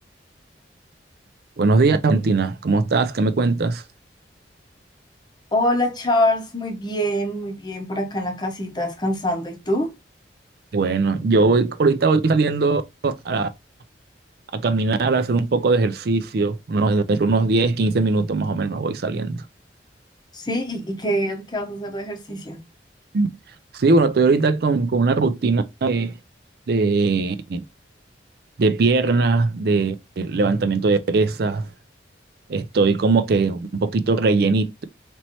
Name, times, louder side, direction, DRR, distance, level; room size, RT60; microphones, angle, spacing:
voice 1, 1.6-3.8 10.7-13.5 14.5-19.4 23.1-23.3 23.7-26.1 26.7-27.6 28.6-31.7 32.5-34.8, right 3 dB, 60° right, 0.4 m, -20 dB
voice 2, 5.5-9.9 20.3-22.6, left 1 dB, 25° left, 0.8 m, -24 dB
4.2 x 3.1 x 2.9 m
head